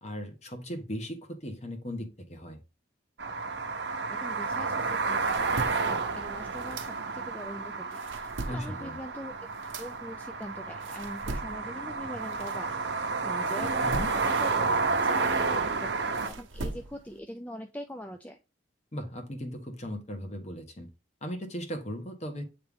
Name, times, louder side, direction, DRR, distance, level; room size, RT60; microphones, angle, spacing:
voice 1, 0.0-2.6 8.5-9.0 13.8-14.1 18.9-20.9 21.2-22.4, equal, 35° left, 1.2 m, -37 dB
sound 1, 3.2-16.3, right 4 dB, 65° right, 0.8 m, -31 dB
voice 2, 4.1-9.3 9.8-18.4, equal, 10° left, 0.4 m, -43 dB
sound 2, 4.9-7.4 7.8-13.1 13.4-17.2, right 2 dB, 85° right, 0.9 m, -41 dB
8.3 x 3.3 x 3.5 m
head